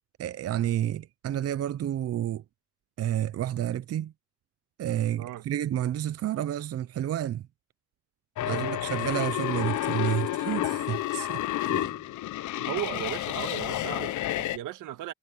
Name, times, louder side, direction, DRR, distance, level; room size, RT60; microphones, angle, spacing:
voice 1, 0.2-2.4 3.0-4.1 4.8-7.4 8.4-11.4 11.7-12.0, right 11 dB, 55° right, 0.6 m, -30 dB
sound 1, 8.4-14.6, left 14 dB, 75° left, 0.8 m, -30 dB
voice 2, 8.4-8.8 12.6-15.1, right 13 dB, 85° right, 1.8 m, -36 dB
cardioid pair, 90°, 30 cm